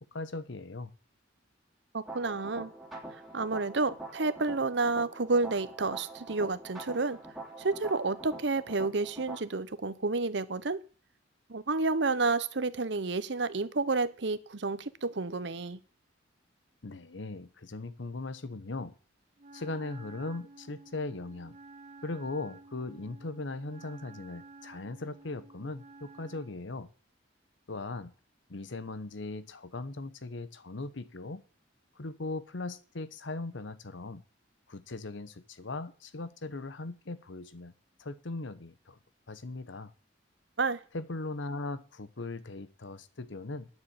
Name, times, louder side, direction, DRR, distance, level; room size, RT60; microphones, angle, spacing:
voice 1, 0.1-0.9 16.8-18.9 19.5-21.6 22.0-26.9 27.7-28.1 28.5-31.4 32.0-34.2 34.7-37.7 38.0-39.0 39.3-39.9 40.9-43.7, left 2 dB, 70° left, 0.9 m, -39 dB
voice 2, 1.9-2.7 3.3-7.2 7.6-10.8 11.5-15.8 40.6-40.8, right 3 dB, 60° right, 0.9 m, -30 dB
sound 1, 2.0-9.4, right 2 dB, ahead, 2.8 m, -45 dB
Wind instrument woodwind instrument, 19.4-26.6, right 3 dB, 35° right, 1.3 m, -52 dB
9.6 x 7.2 x 8.8 m
head